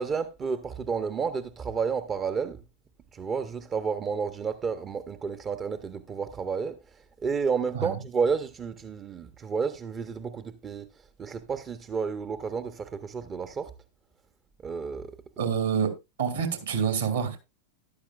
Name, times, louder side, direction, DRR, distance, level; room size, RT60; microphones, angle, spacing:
voice 1, 0.0-2.6 3.1-6.8 7.2-10.9 11.2-13.7 14.6-15.1, right 5 dB, 25° right, 0.6 m, -31 dB
voice 2, 15.4-15.9 16.2-17.4, right 7 dB, 65° right, 2.7 m, -27 dB
13.5 x 11.5 x 2.3 m
figure-of-eight pair, 90°, 0 cm